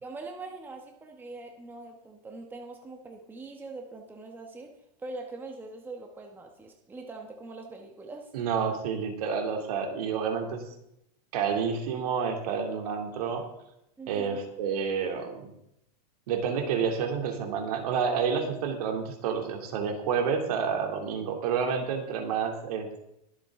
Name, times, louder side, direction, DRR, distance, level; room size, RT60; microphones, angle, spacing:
voice 1, 0.0-8.3 14.0-14.5, right 3 dB, 10° right, 3 dB, 1.1 m, -43 dB
voice 2, 8.3-10.7 11.3-13.4 14.1-15.5 16.3-23.0, right 6 dB, 65° right, 4 dB, 2.7 m, -29 dB
22.0 x 7.6 x 3.7 m, 0.80 s
supercardioid pair, 155°, 21 cm